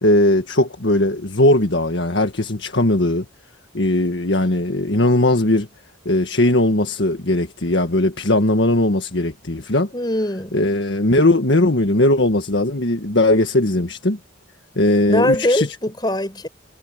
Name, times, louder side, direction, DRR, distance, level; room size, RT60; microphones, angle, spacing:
voice 1, 0.0-3.2 3.7-5.7 6.0-9.9 10.5-14.2 14.7-15.7, left 1 dB, 65° left, 1.7 m, -18 dB
voice 2, 9.9-10.6 15.1-16.5, left 1 dB, 20° left, 4.9 m, -21 dB
head